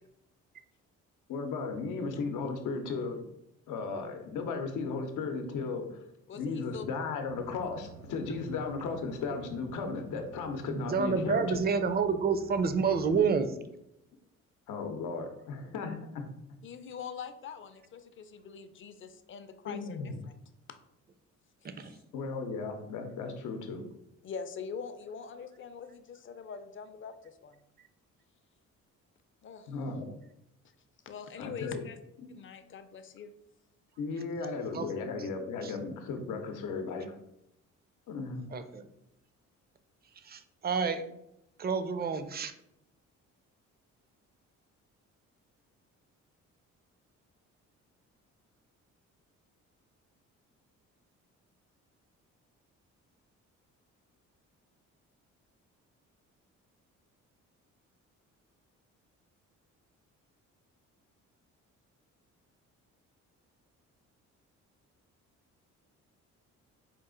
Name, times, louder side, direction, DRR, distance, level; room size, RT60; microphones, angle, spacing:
voice 1, 1.3-3.2 3.7-6.0 6.3-11.6 14.7-16.3 19.6-20.2 22.1-23.8 29.7-30.1 31.4-31.8 32.2-32.4 34.0-37.1 38.1-38.4, left 4 dB, 90° left, 5 dB, 0.7 m, -35 dB
voice 2, 6.3-6.8 16.6-20.3 21.9-22.0 24.2-27.6 29.4-29.7 31.1-32.0 32.3-33.3, left 6 dB, 40° left, 9 dB, 0.5 m, -43 dB
sound 1, 7.3-13.2, right 2 dB, 65° right, 0.8 m, -51 dB
voice 3, 10.7-13.5 21.6-21.9 34.7-34.9 35.6-35.8 38.5-38.8 40.3-41.0 41.6-42.5, right 5 dB, 35° right, 10 dB, 0.4 m, -29 dB
4.5 x 2.4 x 3.7 m, 0.81 s
cardioid pair, 90°, 30 cm